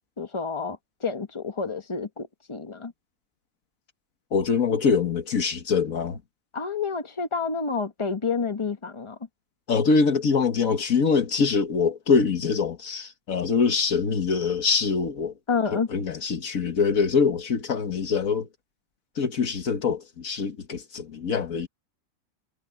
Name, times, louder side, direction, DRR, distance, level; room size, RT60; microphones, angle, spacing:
voice 1, 0.2-2.9 6.5-9.2 15.5-15.9, left 5 dB, 20° left, 1.3 m, -29 dB
voice 2, 4.3-6.2 9.7-15.3 15.7-18.5 19.2-21.7, left 5 dB, 80° left, 1.8 m, -24 dB
omnidirectional pair, 1.4 m